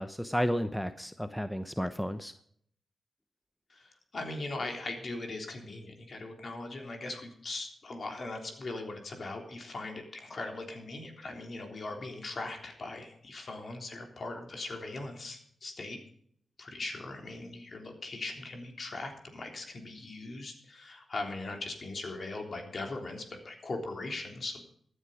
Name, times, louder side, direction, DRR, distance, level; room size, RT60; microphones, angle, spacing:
voice 1, 0.0-2.3, equal, 5° left, 11 dB, 0.9 m, -32 dB
voice 2, 3.7-16.0 16.6-24.6, left 2 dB, 55° left, 3 dB, 3.5 m, -40 dB
14.5 x 10.0 x 5.1 m, 0.65 s
cardioid pair, 50°, 0 cm